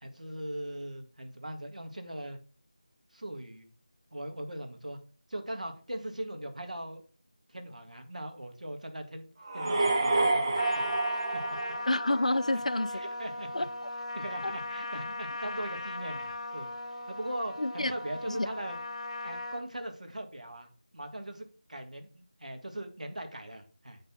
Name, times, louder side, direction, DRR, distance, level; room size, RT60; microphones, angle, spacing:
voice 1, 0.0-2.4 3.1-3.7 4.1-5.0 5.3-7.0 7.5-9.3 9.5-11.0 11.3-11.4 12.9-13.7 14.2-18.8 19.2-24.0, right 1 dB, 75° right, 1.9 m, -40 dB
sound 1, 9.4-12.5, right 2 dB, 35° right, 1.2 m, -28 dB
Trumpet, 10.5-19.6, left 2 dB, 40° left, 2.4 m, -38 dB
voice 2, 11.9-13.0 13.5-13.9 14.4-14.5 17.6-17.9 18.3-18.4, left 2 dB, 65° left, 0.6 m, -29 dB
9.5 x 4.0 x 5.7 m
figure-of-eight pair, 165°, 4 cm